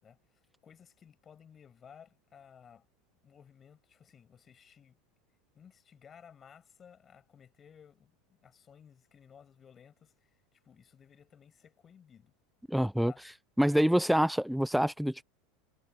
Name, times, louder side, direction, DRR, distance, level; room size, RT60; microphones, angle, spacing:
voice 1, 0.0-2.9 3.2-5.0 5.5-12.3 13.1-13.2 13.7-14.0, left 7 dB, 30° left, 6.1 m, -57 dB
voice 2, 12.7-13.1 13.6-15.2, equal, ahead, 0.3 m, -26 dB
supercardioid pair, 110°, 0 cm